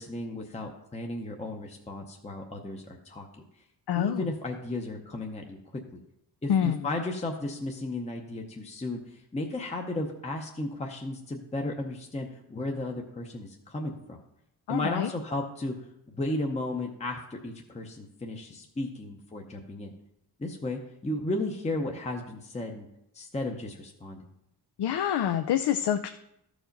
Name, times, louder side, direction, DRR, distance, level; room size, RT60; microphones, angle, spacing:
voice 1, 0.0-3.4 3.9-5.6 5.9-6.0 6.4-14.2 14.7-15.8 16.1-19.9 20.4-22.9 23.1-24.3, left 2 dB, 15° left, 1 dB, 0.7 m, -34 dB
voice 2, 3.9-4.2 6.5-6.8 14.7-15.1 24.8-26.1, left 9 dB, 80° left, 9 dB, 0.5 m, -26 dB
13.5 x 5.0 x 5.2 m, 0.81 s
wide cardioid pair, 175°, 39 cm